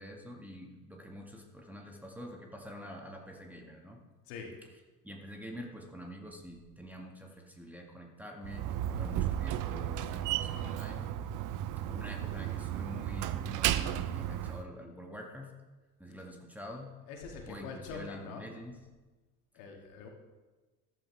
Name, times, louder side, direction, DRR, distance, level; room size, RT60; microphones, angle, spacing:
voice 1, 0.0-4.0 5.0-11.1 11.9-15.5 16.0-17.0 17.5-18.8, equal, 5° right, 1 dB, 2.0 m, -46 dB
Slam, 8.4-14.6, right 11 dB, 40° right, 0.8 m, -34 dB
voice 2, 17.1-18.5 19.5-20.1, left 5 dB, 60° left, 1 dB, 2.6 m, -44 dB
14.0 x 12.0 x 3.6 m, 1.2 s
figure-of-eight pair, 70°, 47 cm